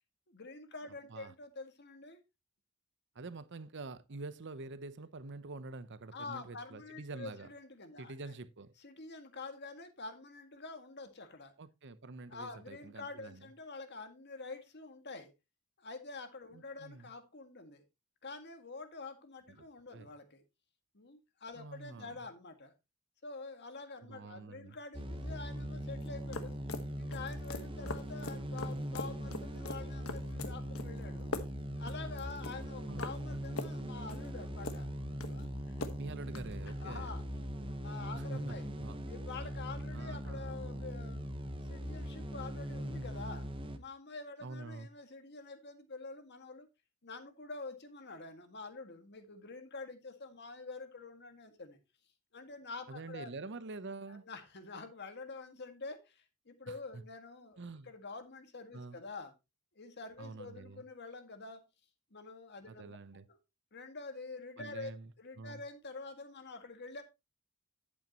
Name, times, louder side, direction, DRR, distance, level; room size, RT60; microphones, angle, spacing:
voice 1, 0.3-2.2 6.1-8.1 8.8-11.5 12.3-15.3 15.8-17.8 18.2-20.4 20.9-22.7 23.2-26.5 27.0-31.3 31.8-34.9 35.3-35.9 36.7-37.3 37.7-38.7 39.1-41.3 41.6-43.5 43.7-46.7 47.0-51.8 52.3-53.3 54.1-59.3 59.8-61.6 62.1-63.0 63.3-63.4 63.7-67.0, left 3 dB, 50° left, 1.8 m, -47 dB
voice 2, 3.1-7.5 8.0-8.7 11.6-13.5 16.5-17.1 19.5-19.7 19.9-20.1 21.5-22.3 24.0-24.8 32.9-33.1 36.0-37.1 38.1-39.0 39.9-40.5 44.4-44.9 52.9-54.2 56.7-57.0 57.6-57.9 58.7-59.0 60.2-60.8 62.7-63.3 64.6-65.1 65.4-65.6, right 3 dB, 50° right, 0.8 m, -47 dB
sound 1, 24.9-43.8, equal, 25° right, 1.1 m, -40 dB
sound 2, 26.0-36.5, left 3 dB, 65° left, 1.3 m, -44 dB
10.5 x 8.6 x 2.9 m
head